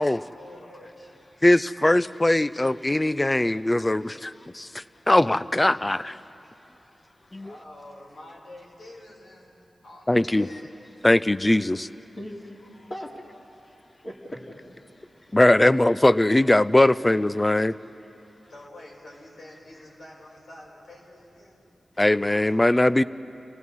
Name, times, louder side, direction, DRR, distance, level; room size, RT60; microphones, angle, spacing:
voice 1, 0.0-0.8 7.4-9.5 9.8-11.0 18.5-21.6, left 1 dB, 85° left, -4 dB, 5.1 m, -47 dB
voice 2, 0.7-1.3 8.8-8.9 12.2-13.2 14.0-14.6 21.1-21.2, equal, 40° left, -3 dB, 2.5 m, -41 dB
voice 3, 1.4-6.2 7.3-7.5 10.1-10.5 11.0-11.9 15.3-17.7 22.0-23.0, left 1 dB, 20° left, 16 dB, 0.4 m, -20 dB
28.0 x 17.5 x 5.5 m, 2.9 s
wide cardioid pair, 80°, 0 cm